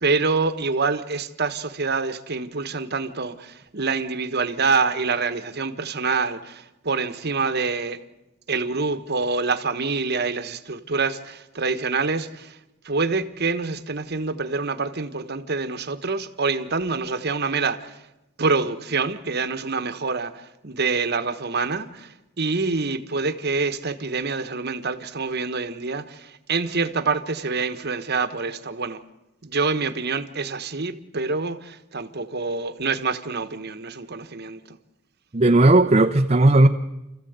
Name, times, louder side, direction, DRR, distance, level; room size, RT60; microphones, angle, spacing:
voice 1, 0.0-8.0 8.5-12.6 12.8-18.0 18.4-29.0 29.4-34.8, right 4 dB, 50° right, 9 dB, 1.2 m, -26 dB
voice 2, 35.3-36.7, right 2 dB, 30° right, 5 dB, 0.7 m, -15 dB
29.0 x 14.5 x 8.1 m, 0.99 s
head